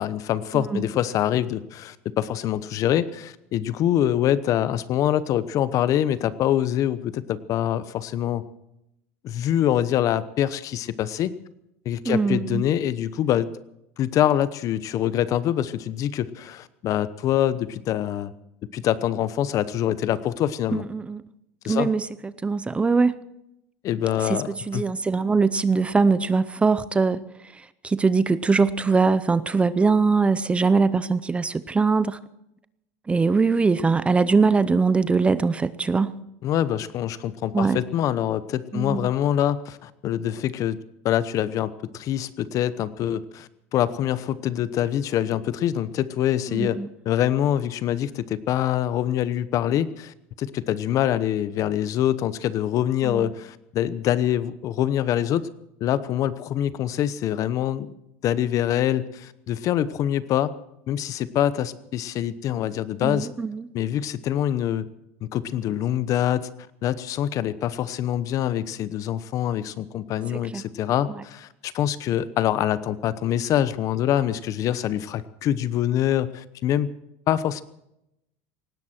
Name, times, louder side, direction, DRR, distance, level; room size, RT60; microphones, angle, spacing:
voice 1, 0.0-8.4 9.2-11.3 11.8-13.5 14.0-18.3 18.7-20.8 21.6-21.9 23.8-24.8 36.4-40.8 41.0-55.5 55.8-57.9 58.2-60.5 60.9-63.3 63.7-64.9 65.3-66.5 66.8-76.9 77.3-77.6, left 11 dB, 45° left, 0.9 m, -25 dB
voice 2, 12.0-12.6 20.7-21.2 21.7-23.2 24.2-27.2 27.5-32.2 33.1-36.2 37.5-37.8 38.7-39.1 46.5-46.9 53.0-53.3 63.0-63.6 70.5-70.6 71.1-71.2, right 4 dB, 15° right, 0.6 m, -22 dB
19.0 x 16.5 x 4.5 m
supercardioid pair, 120°, 8 cm